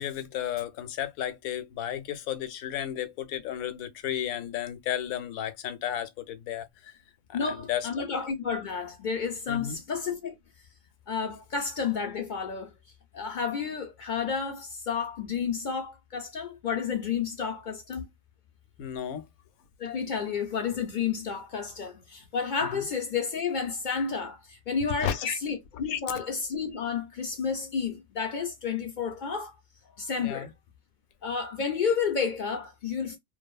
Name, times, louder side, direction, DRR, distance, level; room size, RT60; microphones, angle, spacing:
voice 1, 0.0-6.9 7.3-7.9 9.5-9.8 18.8-19.3 22.7-22.9 25.0-25.4 25.9-26.0 30.2-30.5, left 10 dB, 85° left, 1.0 m, -33 dB
voice 2, 7.3-10.4 11.1-12.7 13.1-18.1 19.8-29.6 30.0-30.5 31.2-33.2, left 6 dB, 60° left, 0.5 m, -31 dB
2.7 x 2.3 x 2.3 m
omnidirectional pair, 1.4 m